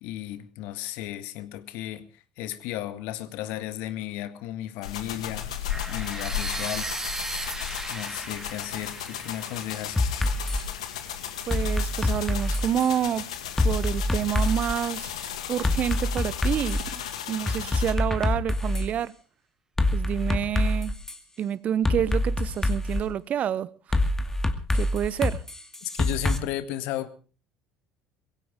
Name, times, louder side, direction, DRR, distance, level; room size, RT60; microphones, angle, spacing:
voice 1, 0.0-5.5 5.9-6.9 7.9-10.0 25.8-27.1, left 13 dB, 65° left, 1.8 m, -34 dB
sound 1, 4.8-17.9, left 10 dB, 80° left, 2.1 m, -35 dB
sound 2, 5.7-11.6, right 2 dB, 15° right, 3.0 m, -37 dB
sound 3, 10.0-10.6 11.5-12.9 13.6-14.8 15.6-17.0 17.5-18.9 19.8-21.2 21.8-23.0 23.9-26.4, left 1 dB, 15° left, 2.4 m, -25 dB
voice 2, 11.5-13.2 13.6-15.1 15.5-17.0 17.3-19.1 19.9-21.0 21.4-23.7 24.7-25.4, right 9 dB, 45° right, 0.9 m, -28 dB
22.5 x 16.5 x 3.7 m
hypercardioid pair, 65°, 3 cm